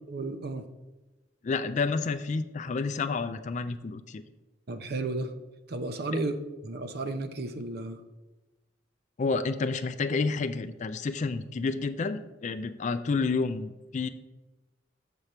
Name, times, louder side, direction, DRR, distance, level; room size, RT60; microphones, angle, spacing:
voice 1, 0.1-0.7 4.7-5.3 5.7-8.0, right 2 dB, 60° right, 9 dB, 0.7 m, -33 dB
voice 2, 1.4-4.2 9.2-14.1, left 4 dB, 40° left, 10 dB, 0.4 m, -30 dB
6.9 x 6.5 x 4.4 m, 1.1 s
head